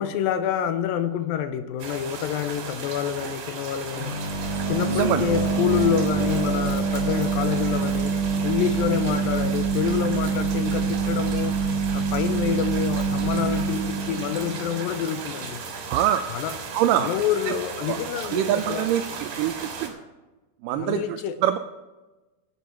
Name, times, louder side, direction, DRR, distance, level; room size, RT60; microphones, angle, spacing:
voice 1, 0.0-4.2 4.7-11.6 11.9-15.7 16.3-16.5 17.0-18.9 20.8-21.4, left 9 dB, 80° left, 11 dB, 2.3 m, -27 dB
sound 1, 1.8-19.9, right 5 dB, 65° right, 3.1 m, -36 dB
sound 2, 3.9-15.4, right 4 dB, 35° right, 2.6 m, -26 dB
voice 2, 4.9-5.2 15.9-16.2 16.7-17.1 17.5-17.6 17.8-18.0 18.2-19.9 20.6-21.6, right 11 dB, 85° right, 9 dB, 1.9 m, -24 dB
11.0 x 8.5 x 6.1 m, 1.1 s
omnidirectional pair, 4.3 m